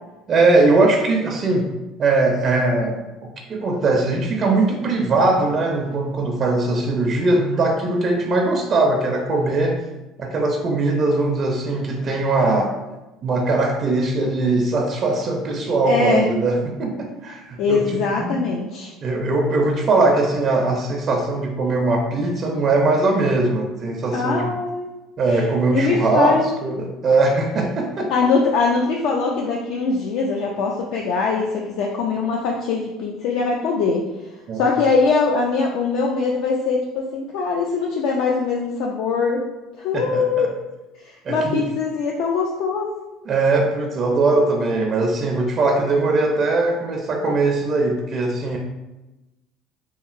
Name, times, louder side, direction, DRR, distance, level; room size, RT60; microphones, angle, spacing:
voice 1, 0.3-1.7 2.0-3.0 3.5-9.8 10.2-12.7 13.2-18.4 19.0-24.5 25.2-28.1 34.5-34.7 39.9-40.5 41.2-41.6 43.3-48.6, right 2 dB, 40° right, 1 dB, 0.4 m, -20 dB
voice 2, 15.8-16.3 17.6-18.9 24.1-24.9 25.3-26.4 28.1-34.1 34.5-39.4 39.8-40.6 41.0-42.9, left 4 dB, 70° left, -1 dB, 0.3 m, -22 dB
2.8 x 2.7 x 2.4 m, 1.1 s
supercardioid pair, 110°, 0 cm